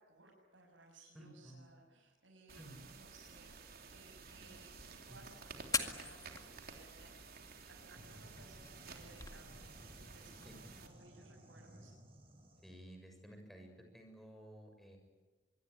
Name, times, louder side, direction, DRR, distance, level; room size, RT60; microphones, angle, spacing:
voice 1, 0.0-3.6 3.9-11.9, right 2 dB, 80° right, -3 dB, 7.0 m, -62 dB
voice 2, 1.1-1.6 2.6-2.8 4.4-4.5 5.1-5.2 10.5-10.6 12.6-15.0, right 1 dB, ahead, 3 dB, 6.9 m, -54 dB
sound 1, 2.5-10.9, right 4 dB, 55° right, 3.5 m, -53 dB
sound 2, 4.6-10.6, left 4 dB, 20° left, 2.0 m, -45 dB
sound 3, 8.0-12.8, equal, 30° right, 6.6 m, -58 dB
25.5 x 23.5 x 9.8 m, 1.2 s
head